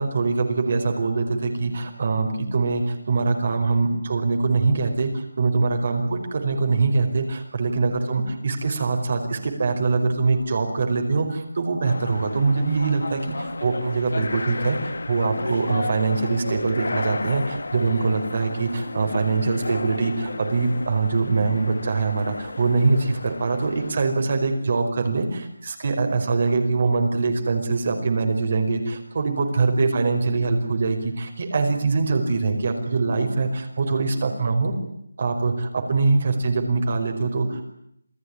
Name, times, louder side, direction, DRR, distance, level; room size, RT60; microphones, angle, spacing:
voice 1, 0.0-34.7 35.2-37.7, right 4 dB, 40° right, 4 dB, 4.9 m, -23 dB
sound 1, 11.8-24.0, left 3 dB, 70° left, 1.9 m, -33 dB
28.5 x 19.5 x 9.9 m, 0.74 s
figure-of-eight pair, 175°, 0 cm